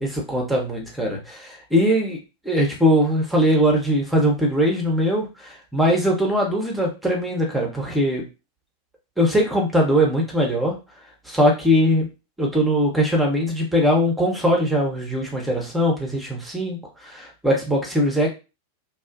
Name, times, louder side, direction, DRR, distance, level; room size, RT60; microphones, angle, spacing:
voice 1, 0.0-2.2 2.4-8.2 9.2-10.7 11.3-12.1 12.4-16.8 17.0-18.3, equal, 5° right, 0 dB, 0.9 m, -21 dB
2.6 x 2.3 x 2.5 m, 0.29 s
figure-of-eight pair, 90°, 0 cm